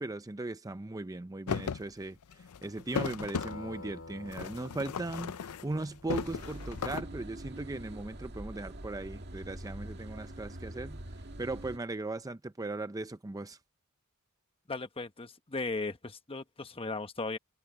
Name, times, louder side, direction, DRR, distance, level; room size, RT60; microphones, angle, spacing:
voice 1, 0.0-11.0 11.4-13.6, right 2 dB, 15° right, 0.5 m, -38 dB
sound 1, 1.5-1.8 2.2-3.6 4.3-5.8 6.1-7.0, left 6 dB, 90° left, 0.5 m, -36 dB
sound 2, 3.4-7.7, left 2 dB, 65° left, 2.4 m, -49 dB
sound 3, 6.2-11.8, right 1 dB, 50° right, 2.1 m, -44 dB
voice 2, 14.7-17.4, left 3 dB, 25° left, 1.2 m, -37 dB
head